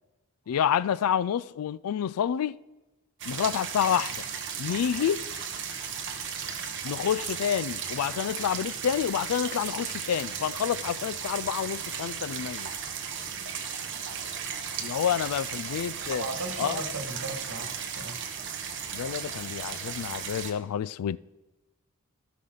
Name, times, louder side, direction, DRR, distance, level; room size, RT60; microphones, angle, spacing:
voice 1, 0.5-2.6 3.2-4.2 4.6-5.2 6.8-12.7 14.8-16.3 16.6-16.8 18.9-21.2, left 8 dB, 80° left, 0.3 m, -28 dB
sound 1, 3.2-20.5, right 7 dB, 55° right, 1.0 m, -35 dB
voice 2, 13.9-14.3 15.2-15.4 16.0-18.2, right 2 dB, 90° right, 1.6 m, -37 dB
16.0 x 5.8 x 3.9 m
head